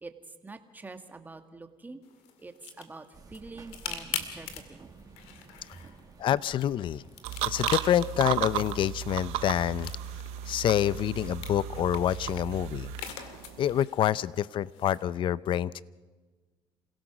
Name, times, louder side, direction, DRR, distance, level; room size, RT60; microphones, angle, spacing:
voice 1, 0.4-2.0 2.4-5.9, right 3 dB, 15° right, 7 dB, 1.8 m, -46 dB
sound 1, 2.0-15.0, left 8 dB, 85° left, 2.1 m, -44 dB
sound 2, 3.1-11.8, right 5 dB, 35° right, 2.1 m, -55 dB
voice 2, 6.2-7.0 7.5-9.9 10.5-12.9 13.6-15.8, left 11 dB, 50° left, 20 dB, 0.5 m, -27 dB
sound 3, 7.2-13.8, right 13 dB, 85° right, 0.7 m, -35 dB
28.0 x 17.0 x 6.1 m, 1.3 s
cardioid pair, 100°, 10 cm